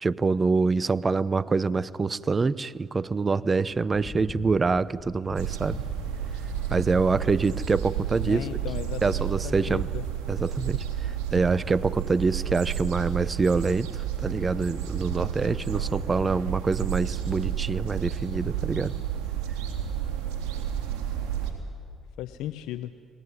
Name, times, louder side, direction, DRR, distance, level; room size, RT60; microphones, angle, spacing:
voice 1, 0.0-5.8 6.7-8.5 9.0-9.9 10.3-10.8 11.3-18.9, right 4 dB, 30° right, 19 dB, 0.8 m, -25 dB
sound 1, 3.7-9.7, left 5 dB, 45° left, 1.2 m, -44 dB
sound 2, 5.4-21.5, right 9 dB, 80° right, 3.5 m, -31 dB
voice 2, 8.2-10.1 22.2-22.9, left 13 dB, 80° left, 11 dB, 0.8 m, -36 dB
29.5 x 20.0 x 9.8 m, 2.2 s
supercardioid pair, 60°, 0 cm